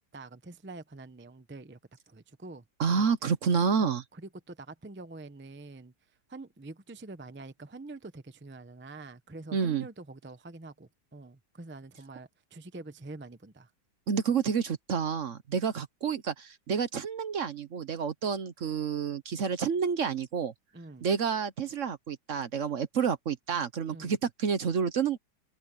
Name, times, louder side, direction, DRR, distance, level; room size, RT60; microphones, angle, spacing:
voice 1, 0.0-1.8 2.1-2.6 2.9-3.1 3.8-5.9 6.3-13.7 20.7-21.1 23.9-24.2, right 2 dB, 10° right, 0.6 m, -46 dB
voice 2, 2.8-4.0 9.5-9.8 14.1-20.5 21.0-25.2, right 6 dB, 55° right, 1.1 m, -29 dB
omnidirectional pair, 1.8 m